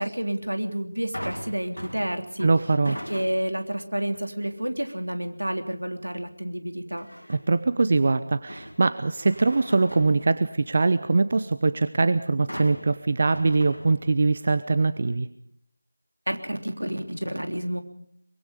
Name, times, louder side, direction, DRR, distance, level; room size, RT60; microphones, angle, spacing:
voice 1, 0.0-2.5 2.9-7.1 16.3-17.8, right 1 dB, 75° right, 6 dB, 3.3 m, -30 dB
sound 1, 1.1-3.7 4.1-4.5 7.0-7.6 8.1-11.0 12.5-14.4 14.8-14.9, equal, 90° left, 2.5 m, -41 dB
voice 2, 2.4-3.0 7.3-15.3, right 3 dB, 40° right, 13 dB, 0.8 m, -22 dB
24.0 x 22.5 x 5.1 m, 0.68 s
figure-of-eight pair, 165°, 0 cm